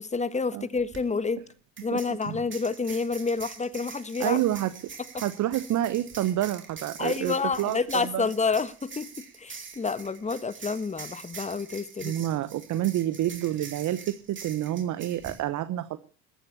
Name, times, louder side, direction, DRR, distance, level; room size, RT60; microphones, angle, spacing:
voice 1, 0.0-1.4 1.8-4.4 7.0-12.2, left 4 dB, 15° left, 1.4 m, -29 dB
sound 1, 0.8-1.0 1.8-15.4, right 5 dB, 30° right, 3.7 m, -44 dB
voice 2, 1.9-2.4 4.2-4.7 5.2-8.3 12.0-16.0, right 13 dB, 45° right, 1.0 m, -28 dB
14.5 x 10.0 x 8.3 m
hypercardioid pair, 75°, 41 cm